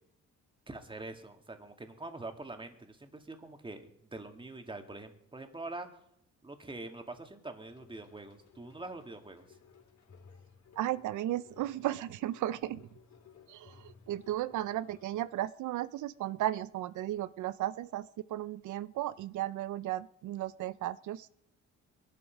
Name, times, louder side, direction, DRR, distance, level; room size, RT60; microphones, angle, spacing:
voice 1, 0.7-6.0 6.4-9.4, right 2 dB, 15° right, 6 dB, 2.2 m, -44 dB
sound 1, 7.7-15.3, left 6 dB, 60° left, 4.2 m, -59 dB
voice 2, 10.8-12.9 13.5-21.3, right 14 dB, 75° right, 16 dB, 0.6 m, -35 dB
22.0 x 12.0 x 5.3 m, 0.77 s
cardioid pair, 90°, 30 cm